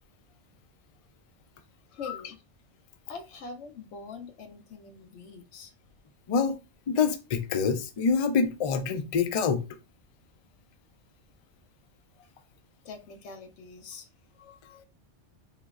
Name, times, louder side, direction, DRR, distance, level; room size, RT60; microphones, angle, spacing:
voice 1, 1.9-2.4 3.1-5.7 12.8-14.1, left 4 dB, 80° left, 0.9 m, -43 dB
voice 2, 6.9-9.6, left 5 dB, 50° left, 0.4 m, -26 dB
4.2 x 3.0 x 2.4 m
omnidirectional pair, 1.2 m